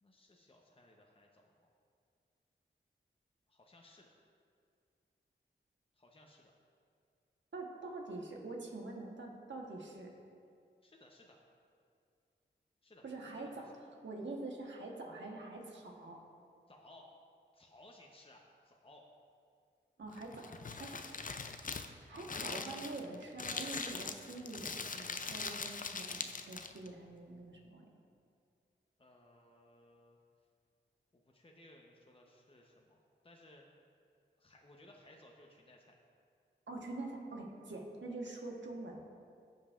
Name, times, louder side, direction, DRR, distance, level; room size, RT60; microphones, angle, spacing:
voice 1, 0.0-1.7 3.5-4.1 5.9-6.5 10.8-11.4 12.8-13.6 16.7-17.1 17.5-19.0 29.0-30.2 31.1-33.0 33.2-33.7 34.4-36.0, left 1 dB, 30° left, 0 dB, 0.9 m, -61 dB
voice 2, 7.5-10.1 13.0-13.7 14.0-16.2 20.0-21.1 22.1-27.9 36.7-39.1, right 2 dB, 70° right, 0 dB, 1.3 m, -45 dB
Crumpling crinkling, 20.1-26.9, left 4 dB, 45° left, 0.5 m, -42 dB
14.5 x 5.3 x 2.5 m, 2.3 s
cardioid pair, 40°, 20 cm